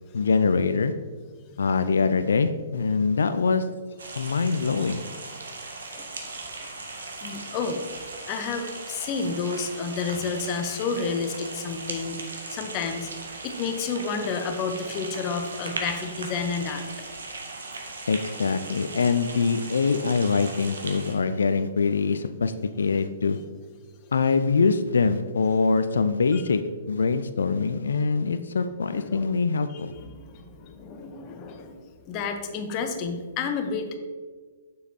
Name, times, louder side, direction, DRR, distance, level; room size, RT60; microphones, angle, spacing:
voice 1, 0.1-0.9 1.6-3.6 4.2-5.0 18.1-23.4 24.1-26.6 26.9-29.9, left 4 dB, 70° left, 11 dB, 0.3 m, -24 dB
sound 1, 4.0-21.1, right 3 dB, 70° right, 1.1 m, -38 dB
voice 2, 7.2-7.8 8.3-16.9 26.3-26.4 28.9-29.4 29.7-34.0, left 5 dB, 35° left, 6 dB, 0.7 m, -31 dB
6.8 x 6.4 x 2.8 m, 1.5 s
figure-of-eight pair, 115°, 0 cm